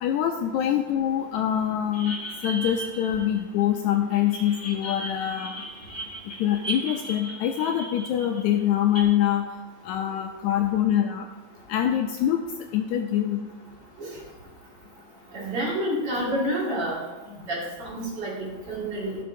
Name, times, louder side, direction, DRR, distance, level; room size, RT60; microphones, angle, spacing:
voice 1, 0.0-2.2 2.4-5.6 6.4-9.5 9.9-11.3 11.7-12.4 12.7-13.4, left 10 dB, 80° left, 4 dB, 1.7 m, -24 dB
sound 1, 1.9-3.8 4.1-9.0, right 2 dB, 10° left, 0.7 m, -37 dB
voice 2, 15.3-17.0 17.5-19.2, right 1 dB, 50° right, -5 dB, 3.0 m, -29 dB
15.5 x 6.8 x 2.6 m, 1.2 s
omnidirectional pair, 3.6 m